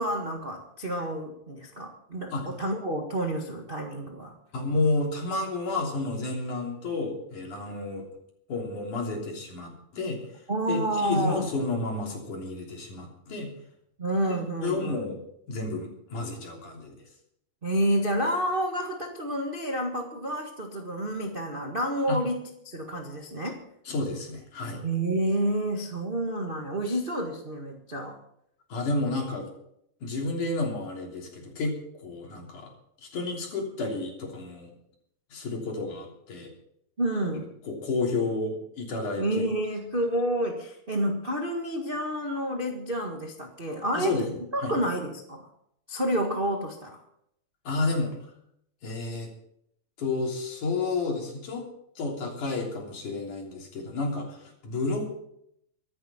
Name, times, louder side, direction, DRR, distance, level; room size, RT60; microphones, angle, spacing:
voice 1, 0.0-4.3 10.5-11.5 14.0-15.1 17.6-23.6 24.8-28.2 37.0-37.5 39.2-44.3 44.5-45.5 45.9-47.0, right 1 dB, 55° right, 1 dB, 0.5 m, -29 dB
voice 2, 4.5-8.1 8.5-10.2 10.7-13.5 14.3-15.2 15.5-17.0 22.1-22.2 23.9-24.8 28.7-29.5 30.0-31.8 32.0-32.7 33.0-34.7 35.3-36.5 37.6-39.4 43.9-44.7 47.6-48.2 48.8-49.3 50.0-51.7 52.0-55.1, left 3 dB, 55° left, 0 dB, 4.7 m, -31 dB
24.0 x 9.5 x 4.4 m, 0.74 s
omnidirectional pair, 4.2 m